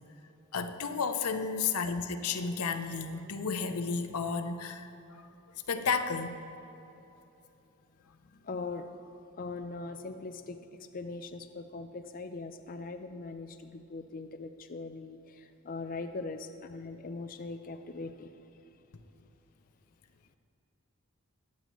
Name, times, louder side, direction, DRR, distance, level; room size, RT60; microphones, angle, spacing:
voice 1, 0.5-4.9 5.2-5.3 5.7-6.4, left 5 dB, 90° left, 9 dB, 0.7 m, -32 dB
voice 2, 8.2-18.4, left 3 dB, 40° left, 7 dB, 0.5 m, -41 dB
21.5 x 8.5 x 3.1 m, 3.0 s
head